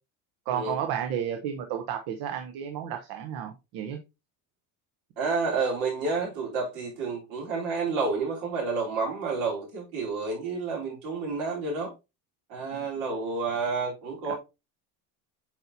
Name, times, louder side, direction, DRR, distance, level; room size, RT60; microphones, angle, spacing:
voice 1, 0.5-4.0 12.7-12.9 14.3-14.4, right 9 dB, 65° right, 1.0 m, -32 dB
voice 2, 5.2-11.9 12.5-14.3, right 4 dB, 85° right, 3.7 m, -30 dB
8.7 x 4.1 x 2.7 m
cardioid pair, 140°, 40 cm